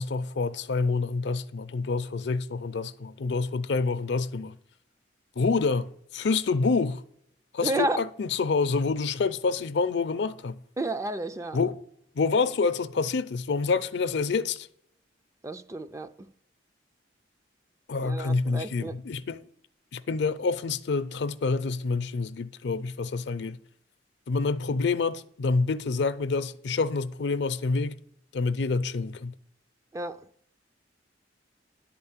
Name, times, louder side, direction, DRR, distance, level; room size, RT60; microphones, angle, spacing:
voice 1, 0.0-4.6 5.4-7.0 7.5-10.6 11.5-11.8 12.1-14.7 17.9-19.4 19.9-23.6 24.3-27.9 28.3-29.3, left 4 dB, 65° left, 0.5 m, -27 dB
voice 2, 7.6-8.0 10.8-11.6 15.4-16.1 18.0-19.0 29.9-30.3, right 2 dB, 15° right, 0.3 m, -31 dB
10.5 x 4.4 x 7.3 m
head